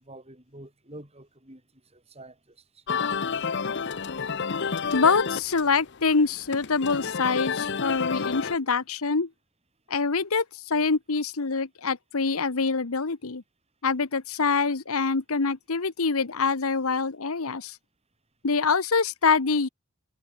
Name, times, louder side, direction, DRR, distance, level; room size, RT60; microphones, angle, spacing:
voice 1, 0.0-2.8, right 1 dB, 30° right, 7.1 m, -48 dB
sound 1, 2.9-8.6, left 6 dB, 55° left, 0.8 m, -30 dB
voice 2, 4.9-9.3 9.9-13.4 13.8-17.8 18.4-19.7, left 4 dB, 80° left, 1.1 m, -25 dB
head